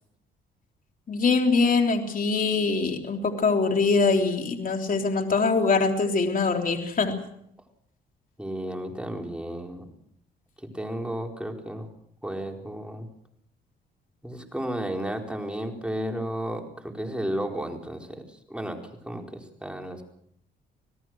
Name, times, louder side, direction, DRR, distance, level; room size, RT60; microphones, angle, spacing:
voice 1, 1.1-7.1, left 4 dB, 45° left, 3 dB, 3.5 m, -23 dB
voice 2, 8.4-9.9 10.6-11.9 12.2-13.1 14.2-20.0, right 1 dB, 5° right, 2 dB, 4.5 m, -33 dB
27.0 x 18.0 x 6.3 m, 0.70 s
cardioid pair, 90°, 20 cm